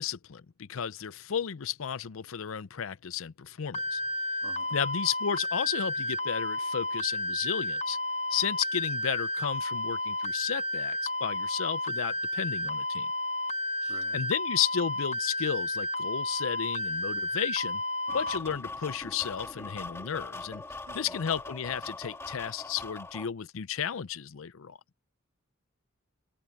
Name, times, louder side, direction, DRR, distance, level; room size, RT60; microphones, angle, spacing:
voice 1, 0.0-4.0 4.7-8.0 8.3-13.1 13.8-17.8 18.1-20.6 20.9-24.8, left 8 dB, 65° left, 0.5 m, -33 dB
sound 1, 3.7-18.4, left 2 dB, 30° left, 0.9 m, -32 dB
voice 2, 4.4-4.8 12.7-12.8 13.8-14.3 20.8-21.3, right 3 dB, 75° right, 2.0 m, -49 dB
sound 2, 18.1-23.3, left 3 dB, 10° left, 1.6 m, -41 dB
head